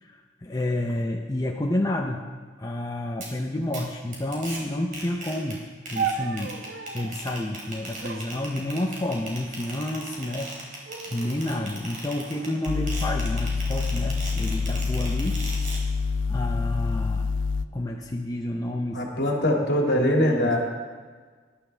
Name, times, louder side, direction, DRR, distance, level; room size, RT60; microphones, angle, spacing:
voice 1, 0.0-2.2 2.6-5.6 5.9-6.6 6.9-15.4 16.3-17.3 17.7-19.0 19.9-20.5, left 1 dB, 20° left, 1 dB, 0.6 m, -30 dB
sound 1, 3.2-3.3 3.7-3.8 4.1-4.6 4.9-5.5 5.9-15.8, right 2 dB, 45° right, 3.5 m, -38 dB
sound 2, 5.9-7.2 8.0-9.2 10.0-10.5 10.9-11.4 12.1-13.4 14.2-14.6, right 5 dB, 70° right, 0.9 m, -36 dB
sound 3, 12.7-17.7, left 4 dB, 80° left, 0.5 m, -26 dB
voice 2, 18.9-20.6, left 1 dB, 60° left, 0 dB, 2.2 m, -22 dB
19.5 x 11.5 x 3.4 m, 1.5 s
head